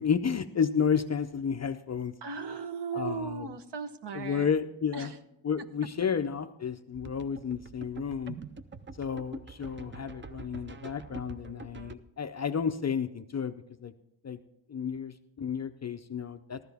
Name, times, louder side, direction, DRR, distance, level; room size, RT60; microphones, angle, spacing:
voice 1, 0.0-2.1 2.9-3.5 4.1-5.1 5.4-8.4 9.0-13.6 13.8-13.9 14.2-14.4 14.7-16.6, left 7 dB, 35° left, 8 dB, 0.4 m, -31 dB
voice 2, 2.2-4.5 4.9-5.2, right 5 dB, 60° right, 10 dB, 0.9 m, -37 dB
sound 1, 6.9-12.0, right 4 dB, 25° right, 0.4 m, -45 dB
14.5 x 12.5 x 3.4 m, 0.81 s
wide cardioid pair, 175°, 48 cm